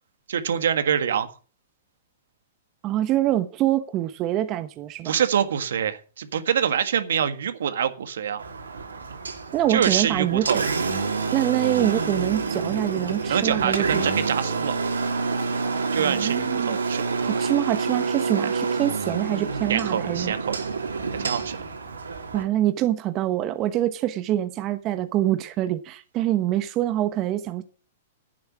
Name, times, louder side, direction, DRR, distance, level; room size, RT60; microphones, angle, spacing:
voice 1, 0.3-1.3 5.0-8.5 9.7-10.6 13.3-14.8 15.9-17.5 19.7-20.6 21.2-21.6, right 8 dB, 75° right, 1.7 m, -25 dB
voice 2, 2.8-5.2 9.5-10.5 11.3-14.1 16.0-16.8 17.2-20.3 22.3-27.6, right 13 dB, 35° right, 1.1 m, -25 dB
Engine, 8.4-22.4, right 4 dB, 90° right, 3.4 m, -28 dB
11.0 x 9.6 x 6.2 m
hypercardioid pair, 115°, 0 cm